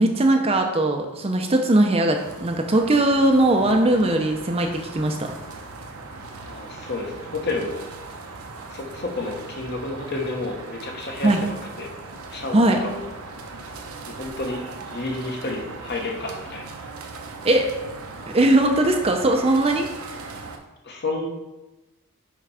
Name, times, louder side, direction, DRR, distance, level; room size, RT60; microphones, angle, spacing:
voice 1, 0.0-5.3 11.2-11.4 12.5-12.8 17.4-17.7 18.3-19.9, right 1 dB, 25° right, 3 dB, 0.6 m, -19 dB
sound 1, 2.1-20.6, right 3 dB, 75° right, 0.9 m, -39 dB
voice 2, 6.4-7.8 8.7-11.9 12.3-13.0 14.2-14.6 14.9-16.8 20.8-21.3, left 2 dB, 50° left, 1 dB, 1.1 m, -30 dB
5.8 x 5.3 x 4.8 m, 1.1 s
head